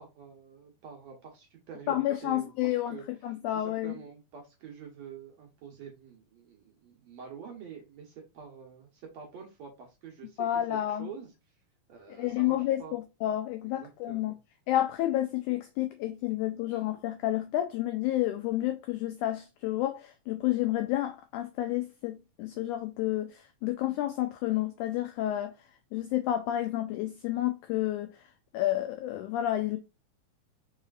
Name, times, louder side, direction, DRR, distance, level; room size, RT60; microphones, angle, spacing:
voice 1, 0.0-3.1 3.5-11.3 11.9-13.0 13.8-14.4 16.7-16.9, right 6 dB, 65° right, 1.9 m, -47 dB
voice 2, 1.9-4.0 10.4-11.1 12.1-14.3 14.7-25.5 25.9-28.3 28.5-29.8, left 13 dB, 90° left, 1.7 m, -30 dB
4.9 x 4.2 x 2.4 m
omnidirectional pair, 4.1 m